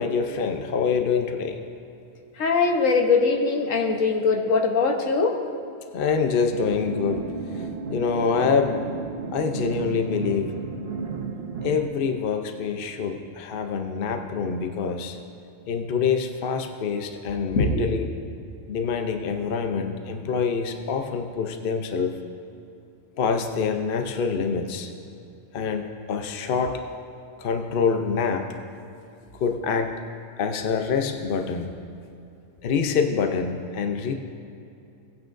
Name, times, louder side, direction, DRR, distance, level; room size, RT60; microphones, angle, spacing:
voice 1, 0.0-1.6 5.9-7.2 7.5-8.8 9.3-10.5 11.6-15.2 15.7-18.0 18.7-22.1 23.2-24.9 25.5-26.8 27.4-28.5 29.4-30.0 30.4-31.7 32.6-34.1, left 5 dB, 50° left, 5 dB, 0.8 m, -26 dB
voice 2, 2.4-5.4 17.5-17.8, left 4 dB, 85° left, 3 dB, 1.4 m, -21 dB
sound 1, 6.5-11.9, right 4 dB, 55° right, 1.0 m, -33 dB
18.0 x 9.4 x 2.6 m, 2.7 s
omnidirectional pair, 1.3 m